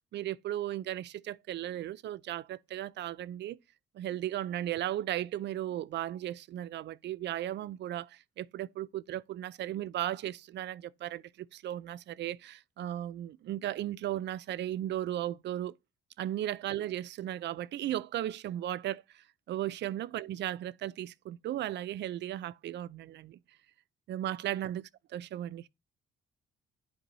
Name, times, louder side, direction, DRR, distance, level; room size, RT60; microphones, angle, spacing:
voice 1, 0.1-3.6 3.9-15.7 16.2-23.4 24.1-25.7, right 12 dB, 65° right, 0.4 m, -36 dB
10.0 x 4.6 x 2.7 m
cardioid pair, 90°, 20 cm